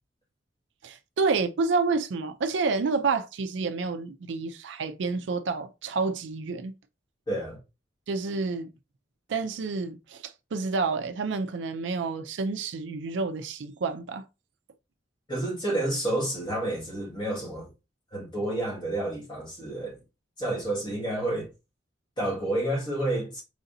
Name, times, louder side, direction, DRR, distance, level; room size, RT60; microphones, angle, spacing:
voice 1, 0.8-6.7 8.1-8.7 9.3-14.2, right 4 dB, 85° right, 0.4 m, -29 dB
voice 2, 7.3-7.6 15.3-17.7 18.1-20.0 20.4-21.5 22.2-23.4, right 1 dB, 25° left, 1.7 m, -29 dB
4.9 x 3.8 x 2.6 m
head